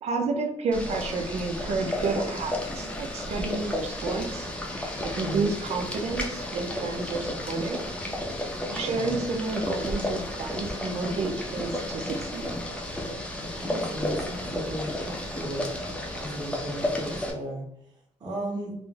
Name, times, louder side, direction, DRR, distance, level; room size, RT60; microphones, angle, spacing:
voice 1, 0.0-7.8 8.7-12.5, right 3 dB, 65° right, 3 dB, 0.5 m, -30 dB
Boiling, 0.7-17.3, left 1 dB, 10° left, 0.6 m, -33 dB
voice 2, 5.1-5.5 8.6-9.2 13.3-15.7 16.1-17.7 18.2-18.7, right 1 dB, 35° right, -5 dB, 1.3 m, -35 dB
3.8 x 2.0 x 3.3 m, 0.73 s
wide cardioid pair, 145°, 12 cm